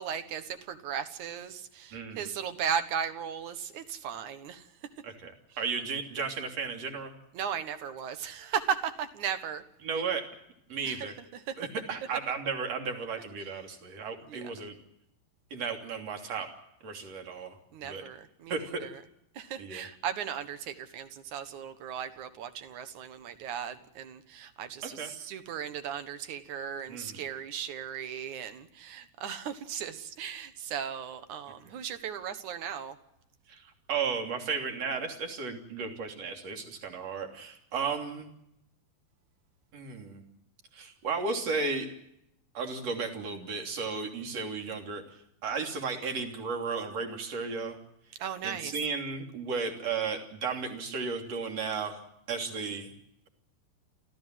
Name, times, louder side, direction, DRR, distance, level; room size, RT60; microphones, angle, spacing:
voice 1, 0.0-4.6 7.3-9.6 10.8-11.1 11.5-11.6 14.3-14.5 17.7-19.0 19.4-33.0 48.2-48.7, right 8 dB, 60° right, 10 dB, 2.2 m, -36 dB
voice 2, 1.9-2.3 5.0-5.3 5.6-7.1 9.8-10.2 10.7-11.1 11.6-14.8 15.5-16.5 16.8-17.6 17.8-18.0 18.5-18.9 19.6-19.9 24.8-25.1 26.9-27.2 33.5-33.6 33.9-38.3 39.7-40.2 40.7-41.9 42.5-45.0 45.4-47.8 48.4-52.0 52.3-52.9, right 5 dB, 40° right, 4 dB, 3.7 m, -34 dB
29.0 x 15.0 x 7.7 m, 0.80 s
omnidirectional pair, 5.0 m